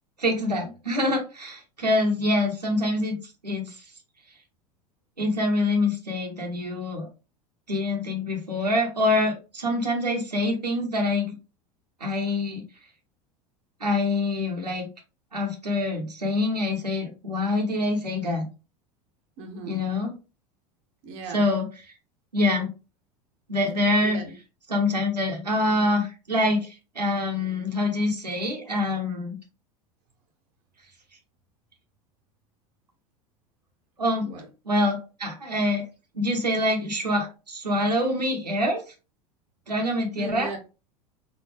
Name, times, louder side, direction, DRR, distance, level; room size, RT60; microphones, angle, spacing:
voice 1, 0.2-3.2 3.4-3.8 5.2-7.1 7.7-11.4 12.0-12.6 13.8-14.9 15.3-18.5 19.7-20.1 21.3-21.7 22.3-22.7 23.5-24.2 24.7-29.4 34.0-34.3 34.7-35.8 36.1-38.8 39.7-40.5, left 1 dB, 85° right, 1.1 m, -25 dB
voice 2, 19.4-19.8 21.0-21.5 24.0-24.3 34.2-34.5 40.2-40.6, right 3 dB, 50° right, 1.0 m, -37 dB
4.2 x 2.7 x 3.2 m
figure-of-eight pair, 80°, 20 cm